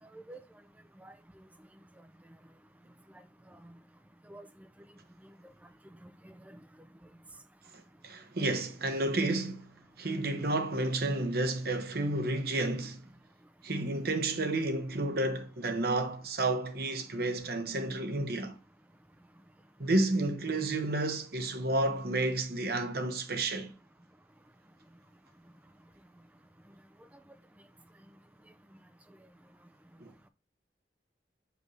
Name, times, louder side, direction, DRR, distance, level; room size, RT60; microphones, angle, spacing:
voice 1, 0.1-0.4 1.0-1.4 4.3-4.5 6.0-6.6, right 1 dB, 10° right, 0.4 m, -49 dB
voice 2, 8.0-9.7 10.0-13.0 13.6-18.5 19.8-23.7 30.0-30.1, right 2 dB, 60° right, 1.1 m, -31 dB
6.5 x 5.2 x 3.2 m
head